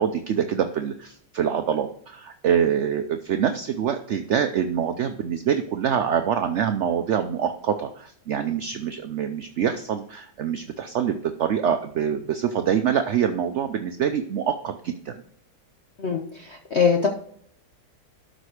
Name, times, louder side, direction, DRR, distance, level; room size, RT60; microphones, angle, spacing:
voice 1, 0.0-15.1, right 8 dB, 65° right, 7 dB, 0.7 m, -25 dB
voice 2, 16.0-17.1, left 6 dB, 45° left, 2 dB, 1.0 m, -23 dB
12.5 x 5.2 x 4.9 m, 0.63 s
omnidirectional pair, 1.9 m